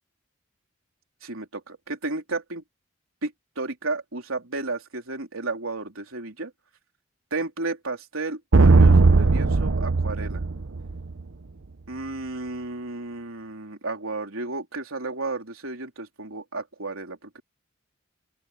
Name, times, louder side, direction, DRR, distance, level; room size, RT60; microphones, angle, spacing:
voice 1, 1.2-2.6 3.2-6.5 7.3-10.4 11.9-17.4, right 3 dB, 90° right, 3.7 m, -33 dB
sound 1, 8.5-11.2, right 3 dB, 70° right, 0.8 m, -17 dB
open air
head